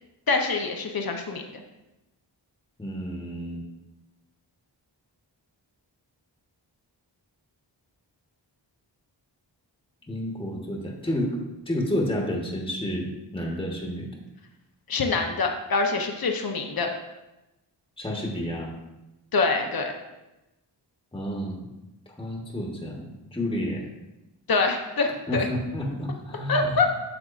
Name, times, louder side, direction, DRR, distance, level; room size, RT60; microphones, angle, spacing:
voice 1, 0.3-1.4 14.9-16.9 19.3-19.9 24.5-25.5 26.5-26.9, left 4 dB, 55° left, 3 dB, 0.8 m, -25 dB
voice 2, 2.8-3.6 10.1-11.4 11.7-14.1 18.0-18.8 21.1-21.7 22.1-23.9 25.3-26.8, equal, 10° left, -1 dB, 1.2 m, -30 dB
8.7 x 6.1 x 2.5 m, 0.98 s
wide cardioid pair, 50°, 44 cm